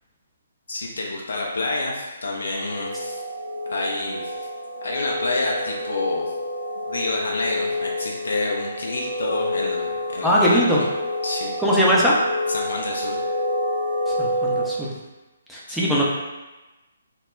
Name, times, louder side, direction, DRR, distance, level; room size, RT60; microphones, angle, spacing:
voice 1, 0.7-3.2 3.7-4.4 4.8-6.3 6.9-10.9 11.2-11.5 12.5-13.2 15.7-15.8, left 2 dB, 60° left, -2 dB, 0.4 m, -28 dB
sound 1, 2.7-14.7, left 1 dB, 80° right, 0.4 m, -28 dB
voice 2, 10.2-10.8 11.6-12.2 14.2-14.9 15.5-16.0, equal, ahead, -7 dB, 0.4 m, -20 dB
2.1 x 2.0 x 3.4 m, 1.1 s
figure-of-eight pair, 135°, 0 cm